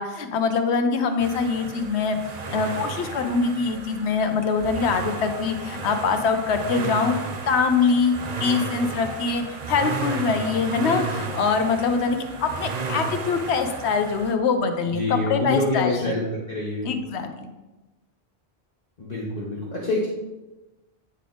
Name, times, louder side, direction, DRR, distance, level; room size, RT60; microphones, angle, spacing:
voice 1, 0.0-2.2 2.5-7.2 7.4-8.1 8.4-16.1 16.8-17.5, left 5 dB, 85° left, 7 dB, 1.0 m, -23 dB
sound 1, 1.2-14.4, right 4 dB, 50° right, 0.6 m, -33 dB
voice 2, 14.9-16.9 19.0-20.1, left 1 dB, 40° left, -6 dB, 1.1 m, -26 dB
8.8 x 3.3 x 3.9 m, 1.1 s
omnidirectional pair, 1.1 m